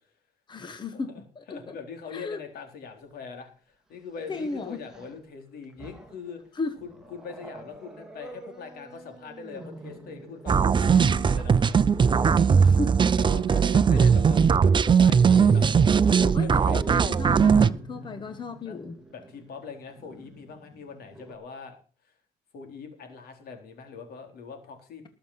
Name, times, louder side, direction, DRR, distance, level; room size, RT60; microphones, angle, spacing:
voice 1, 0.5-1.8 2.1-2.4 4.3-4.8 6.5-6.8 12.5-13.0 13.9-14.1 16.3-19.0, left 3 dB, 25° left, 10 dB, 1.2 m, -35 dB
voice 2, 1.5-12.1 13.2-15.7 16.1-16.8 18.0-18.4 18.7-18.8 19.1-21.8 22.0-22.1 22.5-25.1, left 5 dB, 65° left, 5 dB, 4.0 m, -42 dB
Growling, 3.1-3.2 4.2-5.2 5.6-6.3 6.8-21.3, right 2 dB, 5° right, 2.7 m, -44 dB
sound 1, 10.5-17.7, right 6 dB, 30° right, 0.6 m, -19 dB
20.0 x 6.9 x 5.8 m, 0.40 s
cardioid pair, 110°, 17 cm